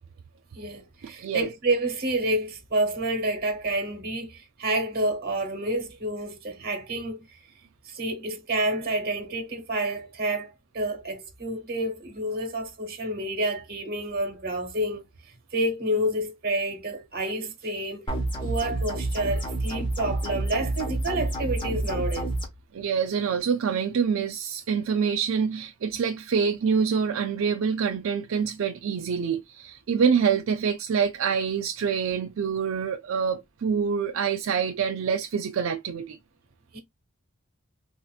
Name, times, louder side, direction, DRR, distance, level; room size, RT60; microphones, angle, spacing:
voice 1, 0.5-7.4 7.8-15.0 15.5-18.0 18.4-22.3 36.7-36.8, right 1 dB, 50° right, 1.2 m, -29 dB
sound 1, 18.1-22.5, right 2 dB, 25° left, 1.1 m, -29 dB
voice 2, 22.7-36.2, right 6 dB, 70° right, 0.4 m, -26 dB
4.1 x 2.8 x 2.3 m
head